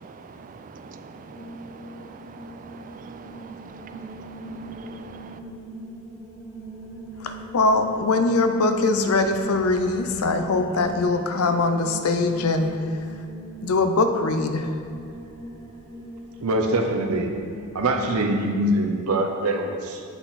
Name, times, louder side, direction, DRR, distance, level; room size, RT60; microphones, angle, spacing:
voice 1, 0.0-5.4, right 4 dB, 40° right, 8 dB, 0.3 m, -43 dB
sound 1, 1.2-18.7, left 1 dB, 15° left, 0.9 m, -38 dB
voice 2, 7.2-12.7 13.6-14.7, left 3 dB, 75° left, 7 dB, 0.5 m, -22 dB
voice 3, 16.4-17.3 17.7-20.0, right 1 dB, 90° right, 3 dB, 0.7 m, -23 dB
8.0 x 4.2 x 4.0 m, 2.2 s
head